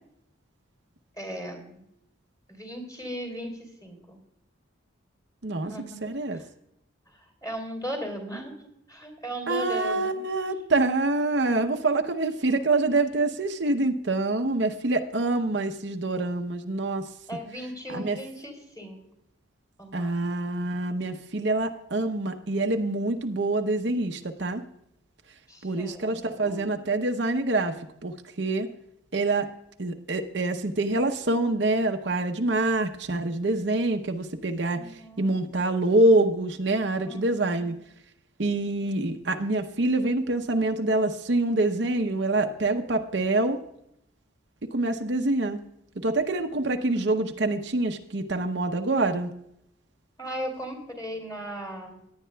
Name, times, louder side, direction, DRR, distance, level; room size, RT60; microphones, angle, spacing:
voice 1, 1.2-1.9 2.5-3.5 3.8-4.2 5.6-6.0 6.3-6.4 7.1-10.1 17.3-19.0 19.8-20.3 25.5-26.8 34.7-35.4 37.0-37.7 50.2-52.0, equal, 20° left, 3 dB, 2.9 m, -37 dB
voice 2, 6.0-6.4 9.5-17.0 17.9-18.2 19.9-24.6 25.6-27.7 28.0-28.7 29.1-29.5 29.8-34.8 35.2-37.7 38.4-43.6 44.7-45.6 46.0-49.3, right 2 dB, 60° right, 5 dB, 0.8 m, -26 dB
17.5 x 10.5 x 2.3 m, 0.77 s
head